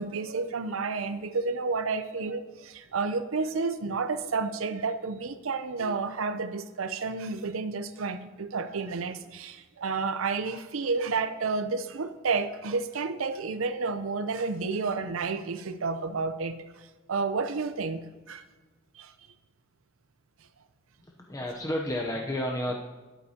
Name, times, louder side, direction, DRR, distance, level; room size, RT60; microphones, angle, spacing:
voice 1, 0.0-16.6 17.1-18.4 19.0-19.1, right 4 dB, 85° right, 10 dB, 0.6 m, -31 dB
voice 2, 21.0-22.8, left 1 dB, 15° left, 1 dB, 0.7 m, -31 dB
12.5 x 11.0 x 2.8 m, 1.3 s
head